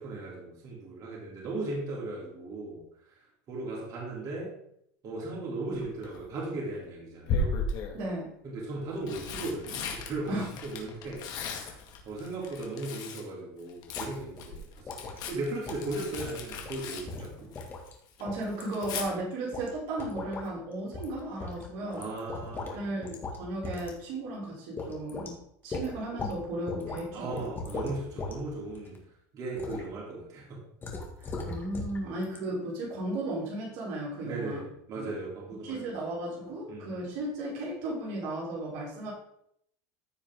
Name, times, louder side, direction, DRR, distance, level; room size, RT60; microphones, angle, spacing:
voice 1, 0.0-2.8 3.5-4.5 5.0-7.5 8.4-11.8 12.0-17.5 22.0-23.1 27.1-29.0 29.3-30.6 32.0-32.1 34.2-35.9 36.7-37.1, right 2 dB, 40° right, -4 dB, 3.7 m, -37 dB
Tearing, 5.8-6.2 7.3-8.0 8.8-13.3 13.6-17.9 18.2-19.1 20.9-21.2 21.5-21.6, left 3 dB, 50° left, 2.1 m, -36 dB
voice 2, 7.9-8.3 10.3-10.5 18.2-22.1 22.6-25.4 25.6-27.4 31.2-34.6 35.0-35.1 35.6-39.1, right 1 dB, 65° right, -4 dB, 3.5 m, -35 dB
sound 1, 13.9-14.1 14.4-14.5 14.9-15.2 15.7-15.9 16.2-16.4 16.7-16.8 17.1-17.9 18.3-19.0 19.5-19.7 20.0-20.5 20.9-21.1 21.4-22.8 23.0-23.4 23.6-23.9 24.3-24.4 24.8-25.3 25.7-26.4 26.7-27.0 27.3-28.3 28.7-29.0 29.6-29.8 30.8-32.0 32.2-32.4, left 3 dB, 25° left, 2.3 m, -38 dB
14.5 x 5.0 x 3.8 m, 0.72 s
supercardioid pair, 130°, 9 cm